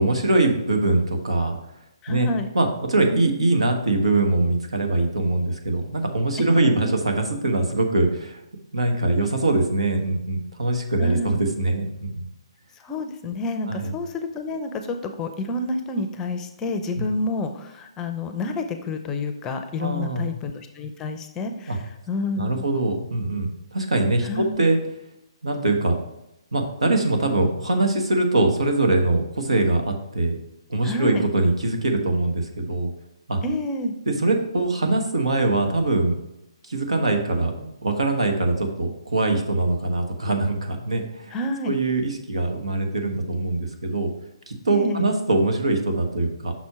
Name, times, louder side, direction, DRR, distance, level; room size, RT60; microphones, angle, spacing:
voice 1, 0.0-1.6 2.1-2.3 2.5-8.4 8.7-12.3 13.6-13.9 16.9-17.0 19.8-20.3 21.7-21.8 22.4-24.8 25.4-26.0 26.5-30.3 30.7-32.9 33.3-33.4 34.1-36.2 36.6-41.3 41.6-44.1 44.5-46.5, right 2 dB, 90° right, 3 dB, 1.2 m, -22 dB
voice 2, 2.0-2.5 6.4-6.9 11.0-11.3 12.8-22.6 24.2-24.6 30.8-31.2 33.4-33.9 41.3-41.7 44.7-45.1, left 2 dB, 15° left, 7 dB, 0.5 m, -29 dB
6.0 x 4.3 x 4.7 m, 0.87 s
hypercardioid pair, 150°, 3 cm